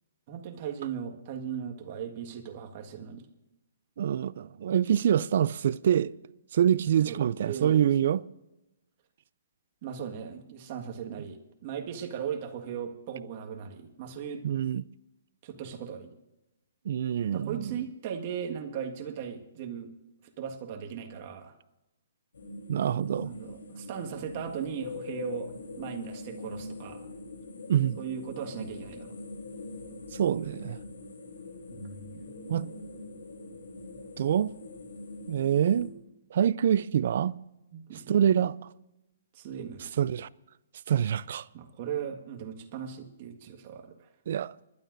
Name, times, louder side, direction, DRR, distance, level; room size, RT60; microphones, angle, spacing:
voice 1, 0.3-3.3 6.8-8.1 9.8-14.4 15.4-16.1 17.3-19.9 20.4-21.5 23.2-27.1 28.0-29.2 31.7-32.3 37.7-38.1 39.3-40.0 41.5-44.1, right 8 dB, 45° right, 1.7 m, -38 dB
voice 2, 4.0-6.2 6.5-8.2 14.4-14.8 16.9-17.7 22.7-23.3 27.7-28.0 30.1-30.8 32.5-32.7 34.2-34.5 35.3-35.9 36.3-37.4 38.1-38.6 40.0-40.3 40.9-41.5 44.3-44.5, right 9 dB, 60° right, 0.4 m, -25 dB
sound 1, 22.3-35.9, left 2 dB, 85° left, 3.5 m, -43 dB
29.5 x 12.0 x 2.7 m
hypercardioid pair, 140°, 0 cm